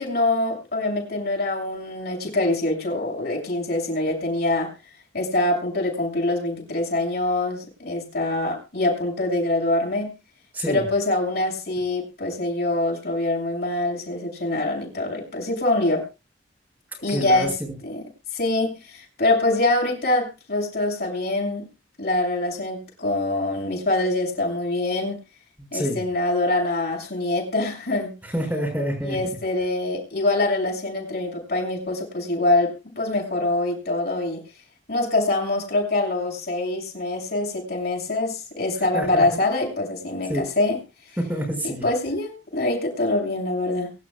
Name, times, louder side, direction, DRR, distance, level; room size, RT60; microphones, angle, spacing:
voice 1, 0.0-4.7 5.1-10.2 10.7-16.0 17.0-17.6 17.8-18.1 18.3-21.7 22.0-25.2 25.7-28.2 29.0-34.4 34.9-40.8 41.6-43.9, left 2 dB, 55° left, 0 dB, 7.0 m, -24 dB
voice 2, 10.5-10.9 17.1-17.8 25.6-26.0 28.3-29.2 38.9-39.2 40.3-40.5 41.2-41.8, equal, 10° right, -1 dB, 6.2 m, -27 dB
24.0 x 12.0 x 2.4 m, 0.30 s
head